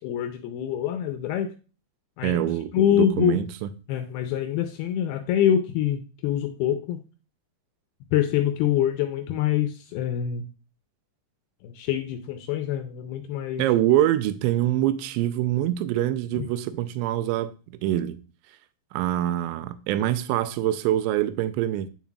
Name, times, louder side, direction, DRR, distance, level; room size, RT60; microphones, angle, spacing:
voice 1, 0.0-1.5 2.2-3.4 3.9-7.0 8.1-10.5 11.6-13.7 16.4-16.5, left 10 dB, 85° left, 2.3 m, -25 dB
voice 2, 2.2-3.7 13.6-17.5 17.8-18.2 18.9-21.9, right 13 dB, 85° right, 2.8 m, -24 dB
9.3 x 5.6 x 2.3 m
omnidirectional pair, 5.0 m